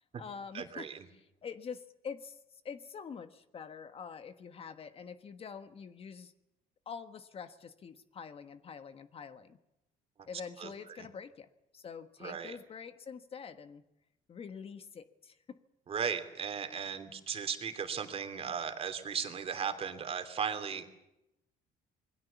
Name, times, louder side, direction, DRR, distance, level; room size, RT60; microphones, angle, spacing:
voice 1, 0.0-2.4 2.6-6.3 6.9-9.6 10.3-11.5 11.7-13.8 14.3-15.6, left 6 dB, 40° left, 10 dB, 1.4 m, -46 dB
voice 2, 0.5-1.0 10.6-10.7 11.0-11.1 12.2-12.5 15.9-20.8, right 7 dB, 40° right, 7 dB, 3.1 m, -36 dB
27.0 x 21.0 x 7.1 m, 0.89 s
cardioid pair, 125°, 15 cm